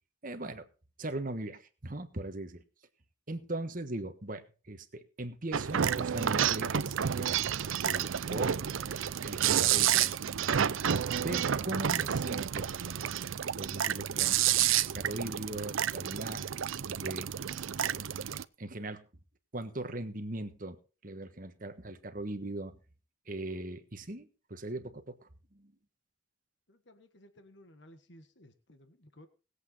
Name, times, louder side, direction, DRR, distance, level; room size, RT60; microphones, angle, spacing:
voice 1, 0.2-0.6 1.0-2.6 3.3-7.5 7.8-8.6 9.2-10.5 11.1-12.7 13.6-14.4 14.9-18.1 18.6-19.0 19.5-22.8 23.3-25.1 25.5-25.7, right 1 dB, 40° right, 8 dB, 1.4 m, -40 dB
sound 1, 5.5-18.4, right 9 dB, 80° right, 0.5 m, -30 dB
voice 2, 26.7-29.3, left 1 dB, 60° left, 8 dB, 1.5 m, -57 dB
20.0 x 8.2 x 4.1 m, 0.35 s
head